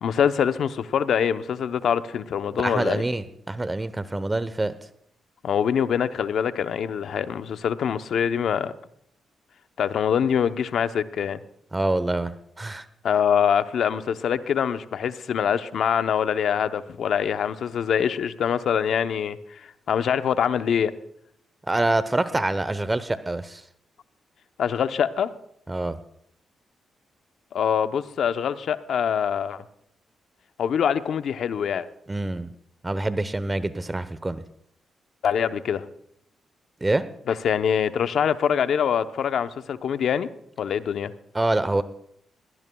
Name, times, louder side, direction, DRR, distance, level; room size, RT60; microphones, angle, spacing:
voice 1, 0.0-3.0 5.4-8.7 9.8-11.4 13.0-20.9 24.6-25.3 27.5-29.6 30.6-31.9 35.2-35.8 37.3-40.3 40.6-41.1, left 8 dB, 70° left, 11 dB, 0.8 m, -24 dB
voice 2, 2.6-4.7 11.7-12.9 21.7-23.6 25.7-26.0 32.1-32.5 32.8-34.4 36.8-37.1 41.3-41.8, right 2 dB, 25° right, 14 dB, 0.8 m, -26 dB
21.5 x 16.0 x 2.3 m, 0.70 s
supercardioid pair, 50°, 0 cm